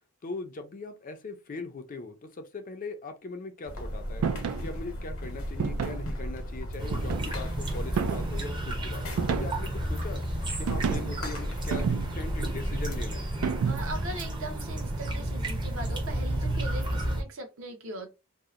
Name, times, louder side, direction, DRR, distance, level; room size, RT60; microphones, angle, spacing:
voice 1, 0.2-4.2 4.6-10.2 10.6-13.3, left 3 dB, 40° left, 0.4 m, -40 dB
sound 1, 3.7-13.1, equal, 65° left, 0.8 m, -36 dB
sound 2, 4.2-4.7 5.6-6.1 6.9-7.5 8.0-8.4 9.2-9.7 10.7-11.2 11.7-12.3 13.4-14.0, right 6 dB, 90° right, 0.3 m, -30 dB
sound 3, 6.8-17.2, right 1 dB, 20° right, 0.6 m, -32 dB
voice 2, 13.6-18.1, right 1 dB, 65° right, 0.8 m, -40 dB
2.7 x 2.0 x 2.4 m
head